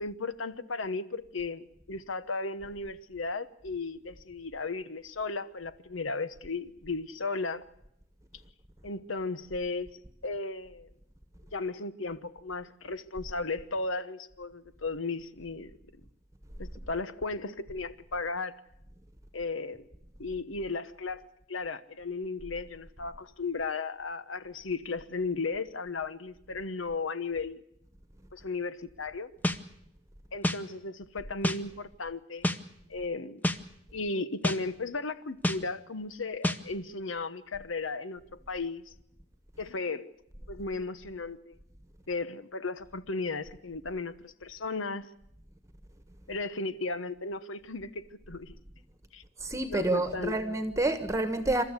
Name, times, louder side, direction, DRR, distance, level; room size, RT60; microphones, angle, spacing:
voice 1, 0.0-7.6 8.8-9.9 10.2-10.9 11.5-15.7 16.6-18.5 19.3-19.8 20.2-27.6 28.3-29.3 30.3-32.5 32.9-33.4 33.9-38.2 38.5-38.9 39.6-40.1 40.5-41.6 42.1-45.1 46.3-48.6 49.1-49.2 49.7-50.3, left 3 dB, 90° left, 1.1 m, -35 dB
sound 1, 29.4-29.6 30.4-30.6 31.4-31.6 32.4-32.6 33.4-33.6 34.4-34.6 35.4-35.6 36.4-36.6, left 1 dB, 10° left, 0.8 m, -27 dB
voice 2, 49.4-51.6, right 2 dB, 15° right, 1.3 m, -28 dB
27.5 x 13.5 x 8.2 m
head